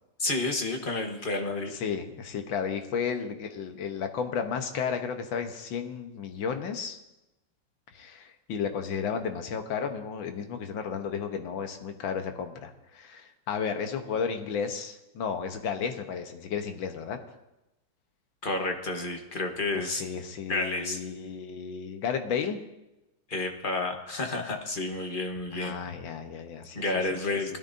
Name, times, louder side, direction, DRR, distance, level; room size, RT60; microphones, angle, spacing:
voice 1, 0.2-1.7 18.4-20.0 20.5-21.0 23.3-25.8 26.7-27.6, left 2 dB, 30° left, 3 dB, 1.1 m, -30 dB
voice 2, 1.7-7.0 7.9-17.2 19.7-22.6 25.5-27.2 27.5-27.6, left 6 dB, 75° left, 6 dB, 1.8 m, -33 dB
20.0 x 13.0 x 2.7 m, 0.96 s
omnidirectional pair, 2.2 m